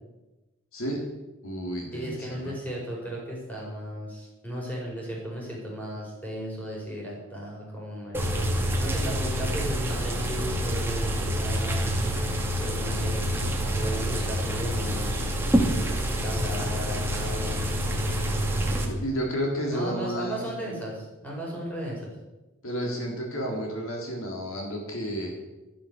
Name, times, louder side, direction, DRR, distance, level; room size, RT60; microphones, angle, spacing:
voice 1, 0.7-1.0 1.4-2.5 18.8-20.4 22.6-25.3, equal, 75° left, 0 dB, 3.7 m, -31 dB
voice 2, 1.9-12.3 12.6-13.3 13.7-15.3 16.2-18.2 19.7-22.1, equal, 10° left, -4 dB, 5.2 m, -36 dB
sound 1, 8.1-18.9, equal, 10° right, 1.9 m, -27 dB
13.0 x 11.0 x 6.8 m, 1.1 s
head